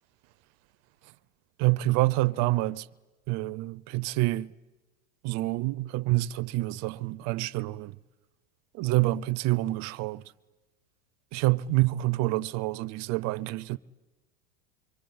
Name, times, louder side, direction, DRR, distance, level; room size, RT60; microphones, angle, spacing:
voice 1, 1.6-2.9 3.3-4.5 5.2-7.9 8.7-10.2 11.3-13.8, right 19 dB, 50° right, 0.8 m, -27 dB
26.0 x 23.5 x 9.5 m
supercardioid pair, 120°, 34 cm